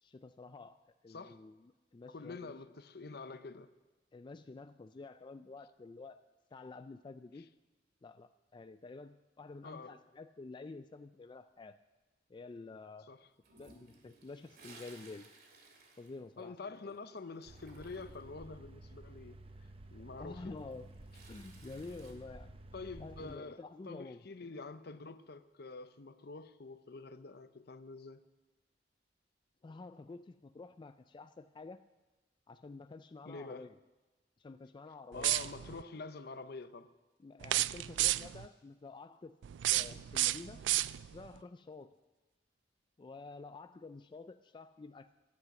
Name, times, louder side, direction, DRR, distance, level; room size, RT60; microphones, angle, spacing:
voice 1, 0.0-2.6 4.1-6.2 6.5-7.5 8.0-11.8 12.3-13.1 13.6-15.3 16.0-16.5 16.8-17.0 20.0-20.9 21.3-22.6 23.0-24.2 29.6-31.8 32.5-33.8 34.4-35.4 37.2-39.4 39.7-40.6 41.0-42.0 43.0-45.1, left 3 dB, 25° left, 0.3 m, -49 dB
voice 2, 1.1-1.4 2.1-3.7 7.3-7.5 9.6-10.0 13.1-13.3 16.4-19.4 19.9-20.6 22.7-28.2 33.2-33.7 35.1-36.9, left 3 dB, 60° left, 0.7 m, -47 dB
Toilet flush, 13.4-16.9 17.2-18.3 20.4-22.1, right 3 dB, 60° right, 2.5 m, -59 dB
sound 1, 17.5-23.4, right 1 dB, 30° right, 0.7 m, -53 dB
sound 2, 35.1-35.8 37.4-38.5 39.4-41.3, right 15 dB, 85° right, 0.3 m, -32 dB
15.5 x 11.0 x 6.0 m
head